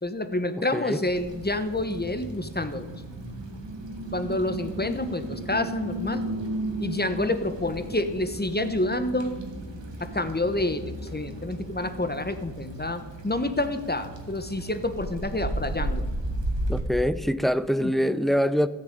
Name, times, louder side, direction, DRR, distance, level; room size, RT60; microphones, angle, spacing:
voice 1, 0.0-2.9 4.1-6.3 6.8-9.3 10.0-16.1 17.8-17.9, left 2 dB, 20° left, 1.2 m, -28 dB
sound 1, 1.0-16.8, right 1 dB, 90° right, 2.0 m, -35 dB
voice 2, 16.7-18.7, equal, ahead, 0.6 m, -24 dB
14.0 x 6.9 x 8.8 m
cardioid pair, 50°, 43 cm